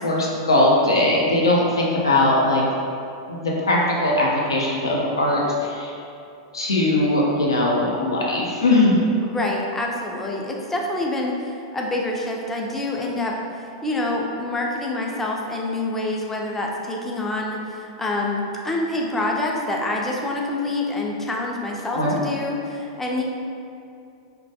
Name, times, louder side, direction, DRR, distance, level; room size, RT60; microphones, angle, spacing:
voice 1, 0.0-2.6 3.3-5.9 6.5-9.0 21.9-22.1, left 2 dB, 85° left, -3 dB, 0.4 m, -20 dB
voice 2, 9.2-13.4 13.8-23.2, left 2 dB, 10° left, -1 dB, 0.3 m, -26 dB
2.2 x 2.1 x 2.7 m, 2.5 s
hypercardioid pair, 100°, 2 cm